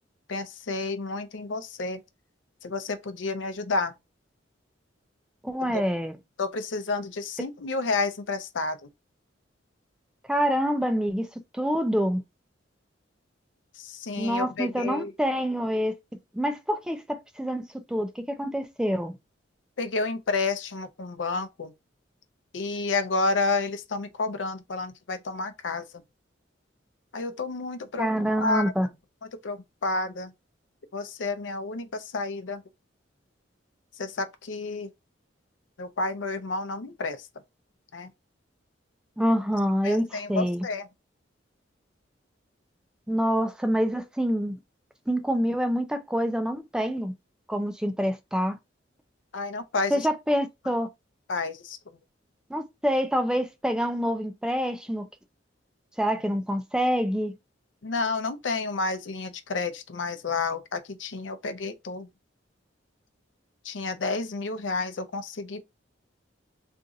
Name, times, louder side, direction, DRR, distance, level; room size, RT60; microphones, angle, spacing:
voice 1, 0.3-2.0 2.6-3.9 5.7-5.8 6.4-8.9 13.8-15.1 19.8-21.7 22.5-26.0 27.1-28.7 29.4-30.3 30.9-32.6 34.0-34.9 35.8-37.3 37.9-38.1 39.8-40.9 49.3-50.1 51.3-51.8 57.8-62.1 63.6-65.6, left 3 dB, 80° left, 0.6 m, -30 dB
voice 2, 5.4-6.1 10.3-11.3 11.5-12.2 14.2-15.9 16.3-19.2 28.0-28.9 39.2-40.6 43.1-44.6 45.1-47.1 47.5-48.6 49.9-50.9 52.5-55.1 56.0-57.3, equal, 5° right, 0.3 m, -26 dB
2.6 x 2.4 x 3.9 m
head